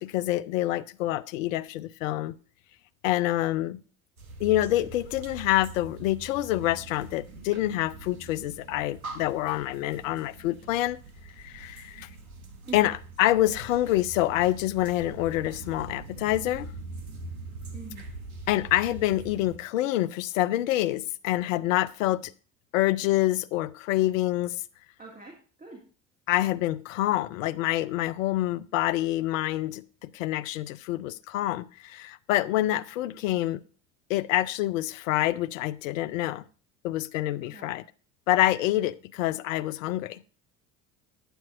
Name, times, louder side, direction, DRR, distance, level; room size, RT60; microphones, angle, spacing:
voice 1, 0.0-2.4 3.0-3.8 4.4-11.0 11.4-12.1 12.7-16.7 18.5-22.3 22.7-24.6 26.3-33.6 34.1-36.4 36.8-37.8 38.3-40.2, left 15 dB, 70° left, 0.6 m, -27 dB
sound 1, 4.2-19.6, right 3 dB, 85° right, 1.2 m, -43 dB
voice 2, 17.7-18.1 25.0-25.8 37.4-37.7, right 4 dB, 20° right, 2.1 m, -44 dB
11.5 x 8.7 x 2.5 m
figure-of-eight pair, 65°, 41 cm